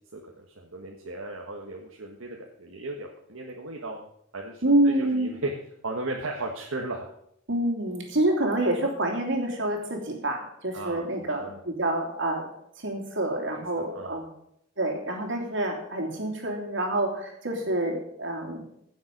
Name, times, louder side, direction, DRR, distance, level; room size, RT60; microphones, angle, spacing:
voice 1, 0.1-4.1 4.3-5.5 5.8-7.1 10.7-11.6 13.5-13.6 13.9-14.2, right 2 dB, 80° right, 0 dB, 1.4 m, -36 dB
voice 2, 4.6-5.3 7.5-12.5 12.8-14.3 14.8-18.6, right 1 dB, 65° right, 2 dB, 3.0 m, -27 dB
16.0 x 7.3 x 5.3 m, 0.74 s
head